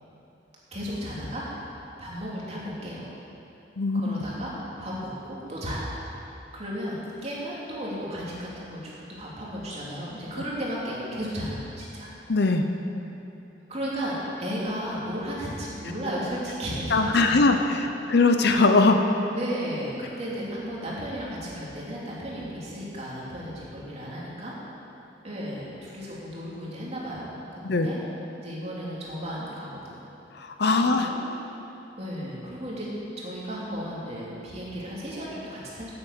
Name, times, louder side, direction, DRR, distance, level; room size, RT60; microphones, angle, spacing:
voice 1, 0.7-1.5 2.0-3.1 3.9-4.5 4.8-5.9 6.5-12.1 13.7-18.1 19.3-24.5 25.2-28.0 28.4-30.1 30.7-31.2 32.0-32.9 33.2-35.9, equal, 35° right, -6 dB, 3.0 m, -34 dB
voice 2, 3.8-4.2 12.3-12.6 16.9-19.1 27.6-27.9 30.4-31.1, left 3 dB, 60° left, 5 dB, 0.8 m, -21 dB
9.5 x 8.9 x 8.2 m, 2.8 s
head